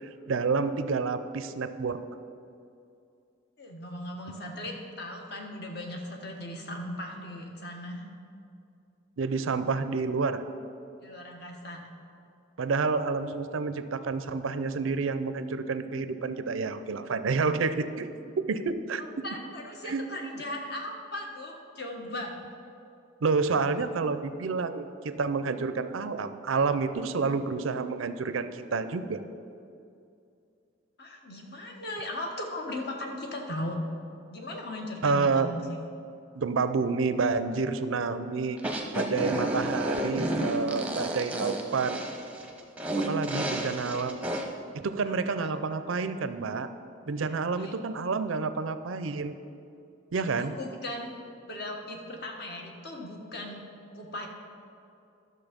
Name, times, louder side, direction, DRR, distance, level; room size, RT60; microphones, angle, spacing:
voice 1, 0.3-2.0 9.2-10.4 12.6-19.0 19.9-20.1 23.2-29.2 35.0-35.5 36.3-38.6 38.9-42.0 43.0-44.2 44.7-46.7 47.1-49.4 50.1-50.5, right 4 dB, 75° right, 11 dB, 0.5 m, -29 dB
voice 2, 3.6-8.1 11.0-11.8 19.0-22.3 31.0-33.8 34.3-35.6 45.0-45.5 47.3-47.7 50.1-51.1 51.5-53.6 53.9-54.3, left 1 dB, 50° left, 1 dB, 1.3 m, -38 dB
sound 1, 38.6-44.4, right 1 dB, 5° right, 0.8 m, -31 dB
12.0 x 6.6 x 5.1 m, 2.5 s
head